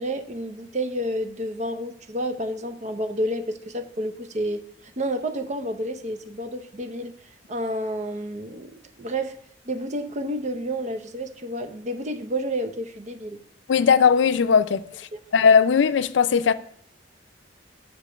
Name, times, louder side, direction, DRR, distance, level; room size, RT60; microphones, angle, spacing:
voice 1, 0.0-4.6 5.0-7.1 7.5-9.4 9.7-13.4 15.1-15.2, right 1 dB, 40° right, 0.7 m, -30 dB
voice 2, 13.7-16.5, left 6 dB, 80° left, 0.4 m, -19 dB
6.2 x 5.1 x 6.7 m
head